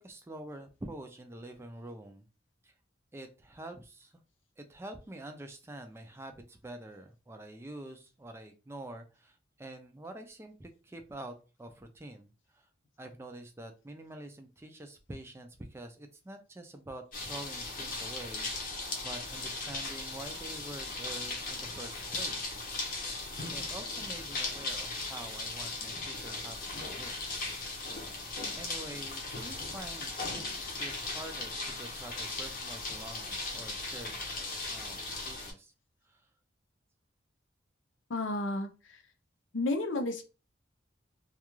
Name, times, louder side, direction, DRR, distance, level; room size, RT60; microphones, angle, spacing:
voice 1, 0.0-2.2 2.6-2.7 3.1-4.2 4.6-12.7 13.0-22.6 23.5-27.2 28.6-30.1 30.8-34.4 34.7-35.7 36.0-36.2, right 1 dB, 15° right, 5 dB, 0.3 m, -47 dB
sound 1, 17.1-35.5, left 3 dB, 45° left, 0.7 m, -38 dB
voice 2, 38.1-39.0 39.5-40.2, left 2 dB, 80° left, 6 dB, 0.5 m, -32 dB
2.3 x 2.3 x 2.9 m, 0.32 s
head